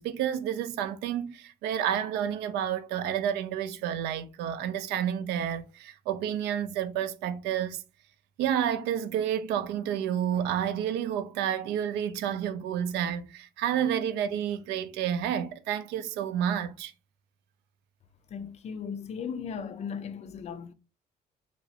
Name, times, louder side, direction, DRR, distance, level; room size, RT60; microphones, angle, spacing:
voice 1, 0.0-7.8 8.4-16.9, right 9 dB, 85° right, 0.4 m, -30 dB
voice 2, 18.3-20.7, left 6 dB, 40° left, 0.4 m, -37 dB
3.1 x 2.8 x 2.7 m
cardioid pair, 110°, 17 cm